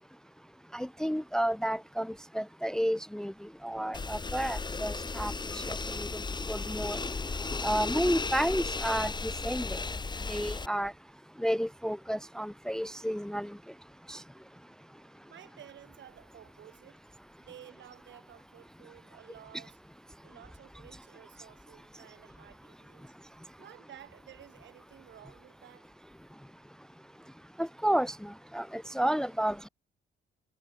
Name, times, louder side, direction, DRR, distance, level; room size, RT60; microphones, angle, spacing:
voice 1, 0.7-2.1 2.3-3.3 3.6-5.3 5.7-6.1 6.5-7.0 7.6-9.1 9.4-9.6 10.3-10.9 11.4-13.5 14.1-14.2 27.6-28.1 28.5-29.7, equal, 5° left, 0.6 m, -31 dB
sound 1, 3.9-10.7, left 4 dB, 20° left, 1.3 m, -35 dB
voice 2, 14.9-19.8 20.2-23.1 23.6-25.9, right 11 dB, 70° right, 2.6 m, -54 dB
cardioid pair, 90°, 20 cm